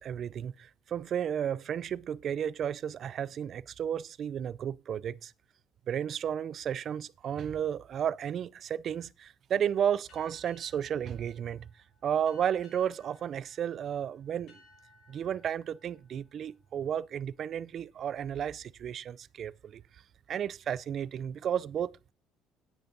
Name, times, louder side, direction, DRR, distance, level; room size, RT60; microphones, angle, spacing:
voice 1, 0.0-5.3 5.9-11.7 12.0-14.6 15.1-19.8 20.3-22.1, right 9 dB, 50° right, 0.4 m, -33 dB
sound 1, 10.1-17.4, left 2 dB, 55° left, 6.3 m, -63 dB
10.0 x 9.3 x 4.0 m
cardioid pair, 115°, 0 cm